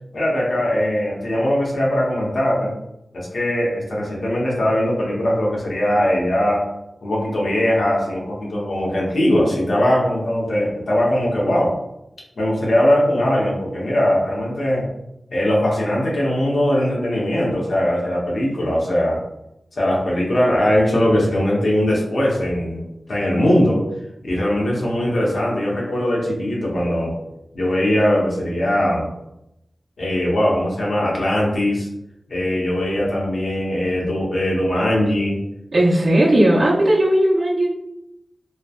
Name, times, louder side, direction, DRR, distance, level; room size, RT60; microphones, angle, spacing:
voice 1, 0.1-2.7 3.1-6.6 7.0-11.7 12.4-14.9 15.3-19.2 19.8-22.8 23.1-23.8 24.2-27.1 27.5-29.0 30.0-31.9 32.3-35.4, left 1 dB, 90° left, -4 dB, 0.8 m, -20 dB
voice 2, 35.7-37.7, right 1 dB, 60° right, -7 dB, 0.6 m, -16 dB
3.1 x 2.1 x 2.3 m, 0.86 s
wide cardioid pair, 85°, 0 cm